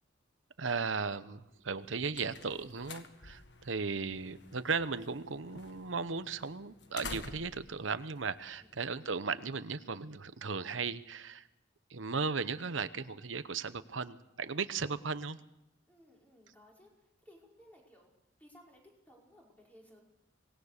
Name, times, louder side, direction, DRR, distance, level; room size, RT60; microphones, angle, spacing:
voice 1, 0.6-11.5 11.9-15.4, right 5 dB, 85° right, 13 dB, 1.0 m, -36 dB
sound 1, 1.7-9.1, left 4 dB, 60° left, 1.7 m, -50 dB
voice 2, 14.8-15.3 15.9-18.1 18.4-18.8 19.1-20.0, equal, 10° left, -2 dB, 5.2 m, -60 dB
25.0 x 19.0 x 6.7 m, 0.86 s
head